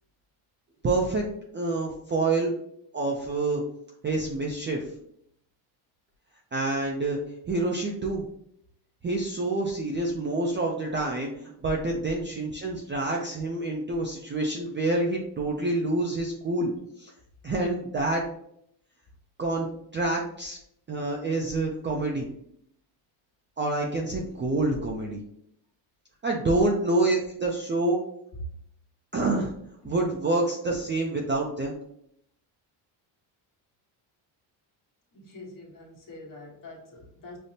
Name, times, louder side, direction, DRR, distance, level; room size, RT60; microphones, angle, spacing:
voice 1, 0.8-1.3 1.5-2.5 2.9-3.6 4.0-4.8 6.5-7.2 7.5-8.2 9.0-16.7 17.0-17.1 17.4-18.2 19.4-19.7 19.9-20.6 20.9-22.3 23.6-25.2 26.2-28.0 29.1-29.5 29.8-31.8, right 2 dB, 25° right, -1 dB, 0.4 m, -27 dB
voice 2, 35.1-37.4, left 2 dB, 40° left, -3 dB, 1.2 m, -45 dB
5.0 x 2.0 x 2.7 m, 0.72 s
cardioid pair, 110°, 50 cm